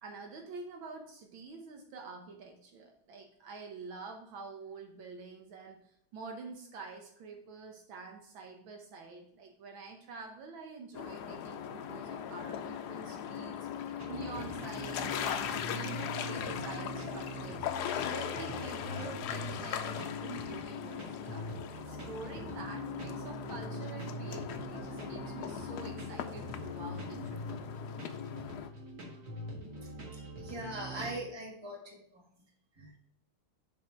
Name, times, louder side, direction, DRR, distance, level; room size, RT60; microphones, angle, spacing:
voice 1, 0.0-27.4, right 4 dB, 70° right, 3 dB, 1.6 m, -47 dB
sound 1, 10.9-28.7, left 9 dB, 75° left, 0.9 m, -39 dB
sound 2, 14.0-31.2, right 1 dB, 50° right, 1.9 m, -43 dB
voice 2, 30.0-31.8 32.8-33.0, right 1 dB, 15° right, -2 dB, 1.6 m, -41 dB
7.0 x 4.7 x 4.4 m, 0.70 s
omnidirectional pair, 2.3 m